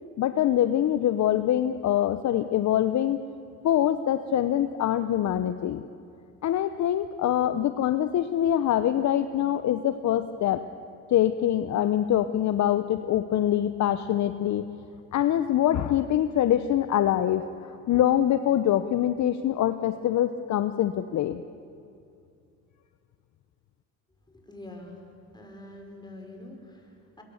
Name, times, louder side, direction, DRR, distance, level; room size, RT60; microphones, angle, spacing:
voice 1, 0.2-3.2 3.6-5.8 6.4-10.6 11.1-14.6 15.1-17.4 17.9-21.4, left 11 dB, 45° left, 10 dB, 0.9 m, -24 dB
voice 2, 24.3-25.1 25.3-27.2, left 1 dB, 10° left, 2 dB, 5.6 m, -45 dB
23.0 x 22.5 x 7.2 m, 2.5 s
supercardioid pair, 80°, 38 cm